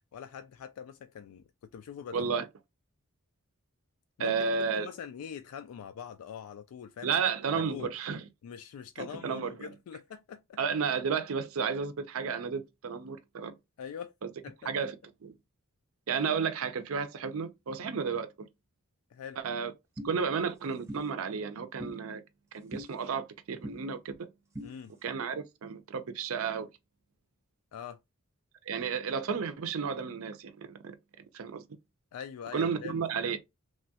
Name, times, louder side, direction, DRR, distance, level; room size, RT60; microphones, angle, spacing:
voice 1, 0.1-2.3 4.2-4.3 4.7-7.2 7.5-7.9 8.4-10.6 13.8-14.1 14.4-14.7 19.1-19.4 24.6-24.9 27.7-28.0 32.1-33.0, left 7 dB, 80° left, 0.3 m, -43 dB
voice 2, 2.1-2.4 4.2-4.9 7.0-8.2 9.0-9.7 10.6-13.5 14.2-14.3 14.7-14.9 15.2-15.3 16.1-18.5 19.4-19.7 20.0-22.2 22.5-24.3 25.0-26.7 28.7-31.0 31.3-31.6 32.5-33.4, right 6 dB, 70° right, 0.5 m, -32 dB
sound 1, 20.0-20.1 20.9-21.0 21.8-21.9 22.7-22.9 23.6-23.8 24.5-24.7, equal, 15° right, 0.8 m, -39 dB
3.0 x 2.2 x 2.7 m
head